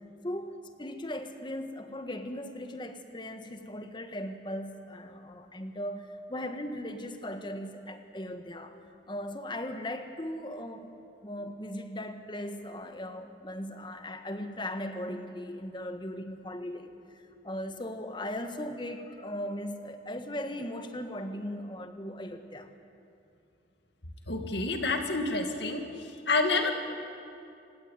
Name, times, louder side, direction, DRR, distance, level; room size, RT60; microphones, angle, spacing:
voice 1, 0.2-8.8 9.1-10.9 11.2-22.7, left 1 dB, 25° left, 7 dB, 1.6 m, -38 dB
voice 2, 24.3-25.8 26.3-26.7, left 3 dB, 65° left, 5 dB, 2.4 m, -28 dB
28.0 x 17.0 x 9.5 m, 2.6 s
head